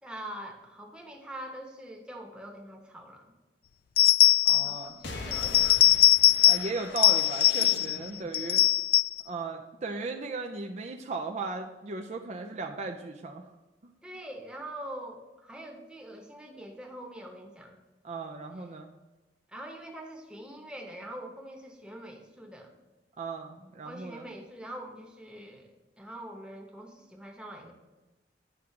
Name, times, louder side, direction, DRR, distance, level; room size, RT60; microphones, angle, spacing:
voice 1, 0.0-3.3 4.5-5.9 14.0-17.7 18.5-18.7 19.5-22.7 23.8-27.7, right 1 dB, 5° right, 1 dB, 1.0 m, -44 dB
sound 1, 4.0-4.8 5.3-6.7 7.0-8.0 8.3-9.2, left 14 dB, 55° left, 0.3 m, -21 dB
voice 2, 4.4-4.9 6.4-8.6 9.3-13.5 13.8-13.9 18.0-18.9 23.2-24.2, right 3 dB, 40° right, 3 dB, 0.5 m, -36 dB
sound 2, 5.0-8.3, left 2 dB, 85° left, 1.1 m, -41 dB
10.0 x 3.7 x 5.8 m, 1.1 s
head